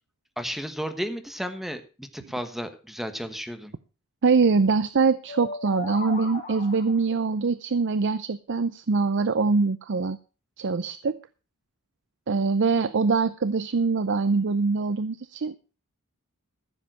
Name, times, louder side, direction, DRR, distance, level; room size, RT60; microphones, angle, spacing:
voice 1, 0.4-3.7, equal, ahead, 8 dB, 1.3 m, -33 dB
voice 2, 4.2-10.2 10.6-11.2 12.3-15.5, right 4 dB, 55° right, 15 dB, 0.5 m, -23 dB
sound 1, 5.3-7.1, left 2 dB, 40° left, 6.1 m, -37 dB
14.5 x 7.5 x 6.1 m, 0.35 s
head